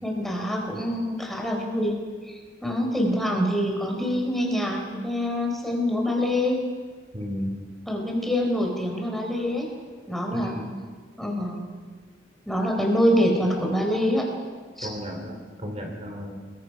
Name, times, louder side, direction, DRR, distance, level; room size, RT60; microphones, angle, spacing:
voice 1, 0.0-2.0 2.3-6.6 7.9-9.7 10.1-10.5 11.2-11.8 12.5-14.3 14.8-14.9, equal, ahead, 0 dB, 4.1 m, -25 dB
voice 2, 7.1-7.6 10.3-10.7 14.8-16.3, equal, 35° right, 1 dB, 3.2 m, -33 dB
28.5 x 21.5 x 5.7 m, 1.5 s
head